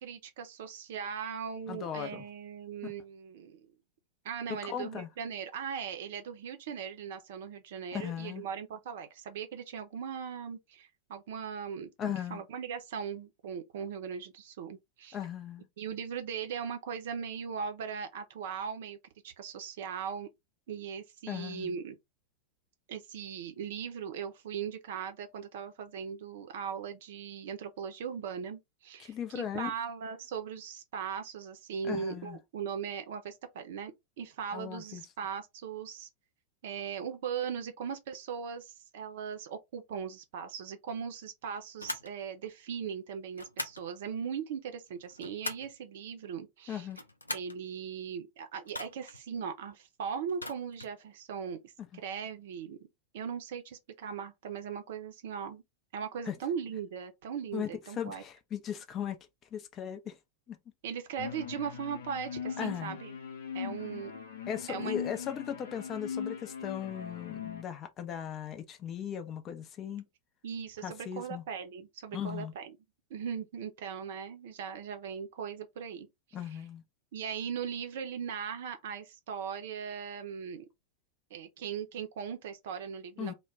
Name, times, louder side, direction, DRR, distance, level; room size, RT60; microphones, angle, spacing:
voice 1, 0.0-3.7 4.2-15.2 15.8-19.0 19.2-20.3 20.7-22.0 22.9-36.1 36.6-46.9 47.3-52.8 53.1-55.6 55.9-58.2 60.8-63.2 63.5-64.1 64.7-65.0 70.4-72.7 73.1-76.1 77.1-80.6 81.3-83.3, right 7 dB, 55° right, 0.6 m, -39 dB
voice 2, 1.7-2.2 2.8-2.9 4.6-5.1 7.9-8.4 12.0-12.4 15.1-15.7 21.3-21.7 29.0-29.7 31.8-32.4 34.5-35.0 46.7-47.0 51.9-52.0 56.3-56.4 57.5-59.2 59.5-60.2 60.5-60.6 62.6-63.0 64.5-70.0 70.8-71.4 72.1-72.5 76.3-76.8 83.2-83.3, left 9 dB, 30° left, 0.5 m, -37 dB
sound 1, 41.8-42.1 43.3-43.8 44.9-45.8 46.8-47.6 48.7-49.2 50.3-51.0, left 2 dB, 80° left, 0.4 m, -40 dB
sound 2, 61.2-67.6, left 7 dB, 65° left, 0.8 m, -40 dB
2.2 x 2.1 x 3.5 m
figure-of-eight pair, 90°, 0 cm